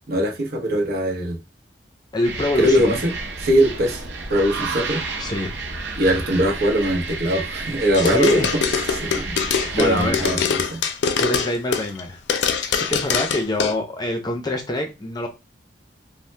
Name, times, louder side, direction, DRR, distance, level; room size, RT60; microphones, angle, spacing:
voice 1, 0.1-1.4 2.6-3.1 3.4-4.0 4.3-5.0 6.0-8.5 8.9-9.2 9.8-10.8, equal, 60° right, 0.8 m, -21 dB
voice 2, 2.1-3.0 5.2-5.5 8.0-8.5 9.7-10.3 11.2-15.3, left 1 dB, 25° left, 0.5 m, -25 dB
sound 1, 2.2-10.4, right 3 dB, 90° right, 0.6 m, -31 dB
sound 2, 7.9-12.0 12.3-13.7, left 6 dB, 75° left, 0.4 m, -23 dB
2.7 x 2.1 x 3.2 m
head